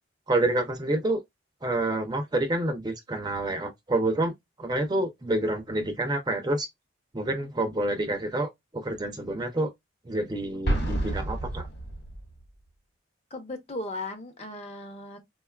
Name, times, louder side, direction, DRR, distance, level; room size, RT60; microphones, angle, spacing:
voice 1, 0.3-1.2 1.6-4.3 4.6-6.7 7.1-9.7 10.1-11.7, right 1 dB, 20° right, 0.4 m, -28 dB
Explosion, 10.6-12.4, right 1 dB, 55° left, 1.0 m, -29 dB
voice 2, 13.3-15.2, left 2 dB, 30° left, 0.6 m, -37 dB
3.6 x 2.3 x 2.2 m
head